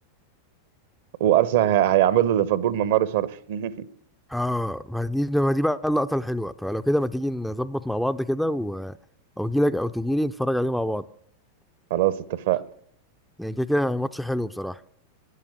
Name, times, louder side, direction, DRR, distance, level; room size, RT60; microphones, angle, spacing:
voice 1, 1.2-3.9 11.9-12.6, right 12 dB, 55° right, 0.7 m, -21 dB
voice 2, 4.3-8.9 9.4-11.0 13.4-14.8, equal, ahead, 0.4 m, -25 dB
12.5 x 10.5 x 6.4 m
figure-of-eight pair, 90°, 0 cm